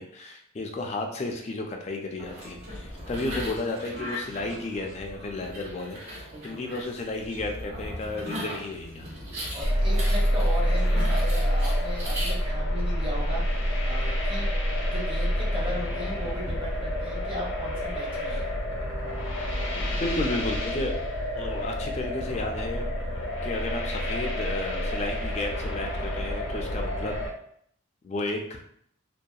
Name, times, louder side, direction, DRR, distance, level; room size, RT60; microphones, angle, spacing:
voice 1, 0.0-9.2 19.8-21.0 21.3-22.9 23.4-27.2 28.0-28.6, left 2 dB, 35° left, 2 dB, 0.3 m, -33 dB
sound 1, 2.2-12.3, equal, 80° right, 1.1 m, -38 dB
voice 2, 6.3-6.9 9.5-18.5, equal, 25° right, -3 dB, 0.6 m, -37 dB
sound 2, 9.6-27.3, equal, 80° left, 0.7 m, -28 dB
2.7 x 2.2 x 2.3 m, 0.67 s
head